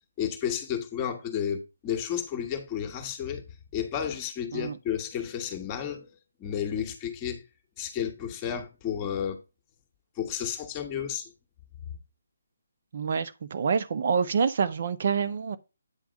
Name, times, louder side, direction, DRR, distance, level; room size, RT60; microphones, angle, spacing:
voice 1, 0.2-3.4 3.7-6.1 6.4-7.4 7.8-9.4 10.1-11.3, left 9 dB, 20° left, 1.3 m, -32 dB
voice 2, 12.9-15.6, right 6 dB, 50° right, 0.7 m, -27 dB
9.1 x 3.5 x 5.1 m
figure-of-eight pair, 145°, 0 cm